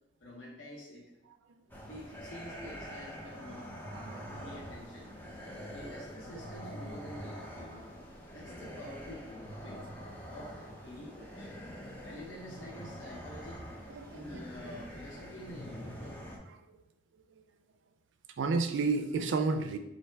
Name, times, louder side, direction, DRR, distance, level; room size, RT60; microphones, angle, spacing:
voice 1, 0.2-1.1 1.9-3.7 4.3-5.1 5.7-7.9 8.3-9.9 10.3-10.6 10.8-11.6 12.0-13.7 14.1-16.2, left 1 dB, 85° left, -4 dB, 0.9 m, -47 dB
sound 1, 1.7-16.4, equal, 10° left, 0.5 m, -45 dB
voice 2, 3.9-4.5 13.9-14.4 18.4-19.8, right 4 dB, 80° right, 8 dB, 0.4 m, -31 dB
3.3 x 2.6 x 4.4 m, 0.89 s
head